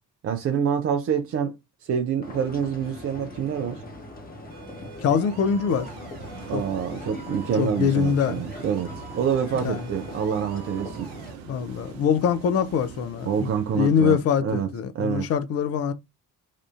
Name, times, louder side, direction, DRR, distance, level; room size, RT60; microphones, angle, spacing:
voice 1, 0.2-1.5 1.8-3.8 6.5-11.1 13.3-14.7 14.9-15.3, right 7 dB, 30° right, 0.4 m, -26 dB
sound 1, 2.2-11.3, left 2 dB, 20° left, 0.9 m, -41 dB
sound 2, 4.5-11.4, right 8 dB, 50° right, 1.1 m, -47 dB
voice 2, 5.0-5.9 6.5-6.6 7.6-8.4 9.6-9.9 11.5-15.9, left 7 dB, 35° left, 0.4 m, -24 dB
sound 3, 5.7-14.0, right 6 dB, 80° right, 0.6 m, -44 dB
3.5 x 2.4 x 2.4 m
figure-of-eight pair, 45°, 50 cm